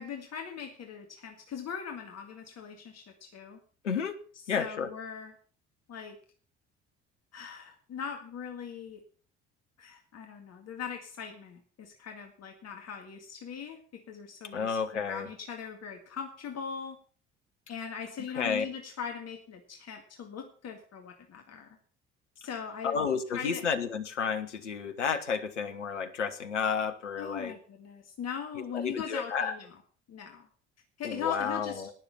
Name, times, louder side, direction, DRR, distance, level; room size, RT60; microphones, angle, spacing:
voice 1, 0.0-3.6 4.6-5.3 5.9-6.2 7.3-9.0 9.8-17.0 17.7-21.7 22.4-23.0 23.3-23.6 27.2-29.7 30.1-30.5 31.0-31.8, left 7 dB, 45° left, 4 dB, 2.0 m, -40 dB
voice 2, 3.8-4.2 4.5-4.9 14.5-15.3 18.3-18.7 22.8-27.5 28.7-29.6 31.0-31.9, left 6 dB, 85° left, 8 dB, 1.1 m, -31 dB
18.5 x 6.9 x 5.8 m, 0.43 s
figure-of-eight pair, 55°, 35 cm